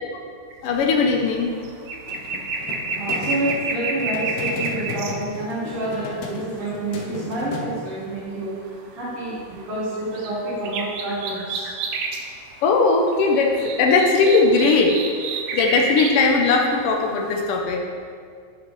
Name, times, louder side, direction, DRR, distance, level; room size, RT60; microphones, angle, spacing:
voice 1, 0.6-1.5 12.6-14.9 15.5-17.8, left 4 dB, 90° left, 1 dB, 1.2 m, -18 dB
sound 1, 0.8-1.0 1.3-5.2 6.0-6.7 8.7-8.9 9.3-10.4 10.6-12.3 12.6-12.7 13.0-16.2 16.7-17.3 17.6-17.7, right 4 dB, 80° right, 1.8 m, -30 dB
sound 2, 2.1-7.6, left 3 dB, 75° left, 2.0 m, -34 dB
voice 2, 3.0-11.7, right 1 dB, 55° right, -7 dB, 2.0 m, -28 dB
10.5 x 5.5 x 3.1 m, 2.2 s
omnidirectional pair, 3.4 m